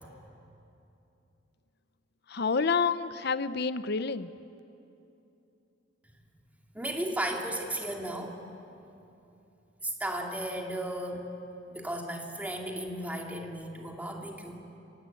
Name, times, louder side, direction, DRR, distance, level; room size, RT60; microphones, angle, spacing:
voice 1, 2.3-4.3, left 5 dB, 60° left, 14 dB, 0.7 m, -28 dB
voice 2, 6.7-8.4 9.8-11.3 11.7-14.6, right 1 dB, 10° right, 1 dB, 2.5 m, -35 dB
29.5 x 18.0 x 8.5 m, 2.8 s
head